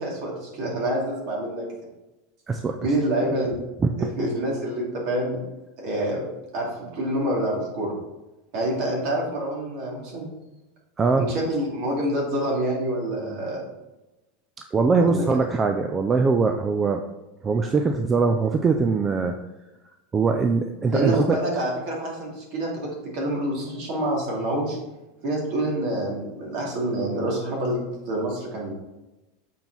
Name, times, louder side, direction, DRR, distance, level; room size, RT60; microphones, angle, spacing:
voice 1, 0.0-1.6 2.8-3.6 4.0-5.4 5.8-6.3 6.5-7.9 8.5-10.3 11.2-13.6 14.9-15.4 20.9-24.8 25.2-28.7, right 1 dB, 50° right, -2 dB, 2.4 m, -27 dB
voice 2, 2.5-2.8 3.8-4.1 11.0-11.3 14.7-17.0 17.4-19.3 20.1-21.4, right 4 dB, 15° right, 5 dB, 0.4 m, -22 dB
7.3 x 4.5 x 4.0 m, 1.0 s
supercardioid pair, 160°, 0 cm